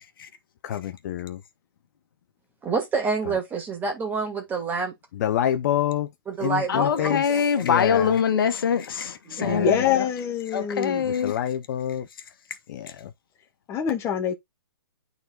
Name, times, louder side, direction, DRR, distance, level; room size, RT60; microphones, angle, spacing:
voice 1, 0.6-1.4 5.1-6.1 6.4-7.2 7.6-8.2 9.4-9.7 11.0-12.1 12.7-13.1, left 11 dB, 45° left, 0.7 m, -27 dB
voice 2, 2.6-4.9 6.3-7.6 9.3-9.7, right 4 dB, 15° right, 2.0 m, -28 dB
voice 3, 6.7-10.0 10.5-11.3, left 7 dB, 65° left, 1.5 m, -24 dB
voice 4, 9.4-11.1 13.7-14.3, left 8 dB, 20° left, 1.1 m, -25 dB
11.5 x 4.0 x 2.4 m
hypercardioid pair, 140°, 12 cm